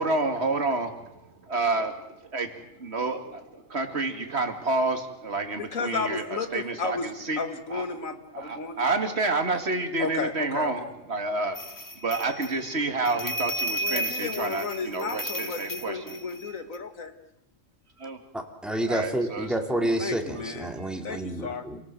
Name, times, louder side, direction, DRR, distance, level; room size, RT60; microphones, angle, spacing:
voice 1, 0.0-7.4 7.7-7.8 8.3-11.6 12.0-16.1 18.0-18.2 18.9-19.5, right 3 dB, 50° right, 6 dB, 2.5 m, -29 dB
voice 2, 5.6-7.1 7.4-8.8 9.0-9.2 10.0-10.9 13.8-17.1 20.0-20.7 21.0-21.7, left 4 dB, 80° left, 9 dB, 2.2 m, -33 dB
sound 1, 11.5-16.8, equal, 15° left, 1.2 m, -34 dB
voice 3, 18.3-21.8, right 1 dB, ahead, 4 dB, 2.5 m, -29 dB
28.5 x 18.5 x 7.7 m, 0.85 s
omnidirectional pair, 1.4 m